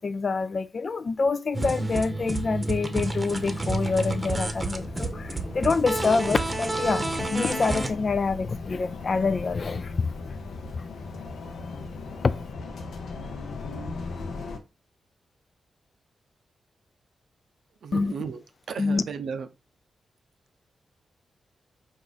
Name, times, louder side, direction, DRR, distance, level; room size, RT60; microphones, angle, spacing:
voice 1, 0.0-10.1 10.7-10.8 12.2-12.3 17.9-18.1 18.8-19.0, left 4 dB, 50° left, 0.4 m, -26 dB
sound 1, 1.5-7.9, right 2 dB, 30° right, 0.8 m, -30 dB
sound 2, 3.3-14.6, left 3 dB, 75° left, 0.8 m, -37 dB
voice 2, 17.8-19.5, right 6 dB, 70° right, 0.5 m, -35 dB
4.6 x 2.5 x 4.0 m
supercardioid pair, 45°, 0 cm